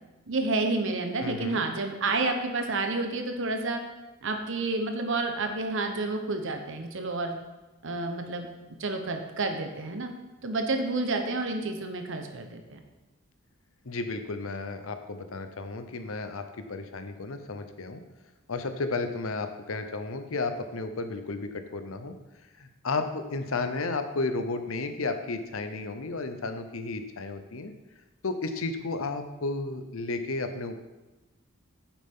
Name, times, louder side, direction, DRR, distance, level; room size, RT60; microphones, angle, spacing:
voice 1, 0.3-3.8 4.2-7.4 7.8-8.5 8.8-10.1 10.4-12.8, right 3 dB, 65° right, 5 dB, 1.1 m, -29 dB
voice 2, 1.2-1.6 13.8-18.0 18.5-22.1 22.6-27.7 28.2-30.8, left 3 dB, 75° left, 8 dB, 0.8 m, -33 dB
9.7 x 7.3 x 3.7 m, 1.1 s
head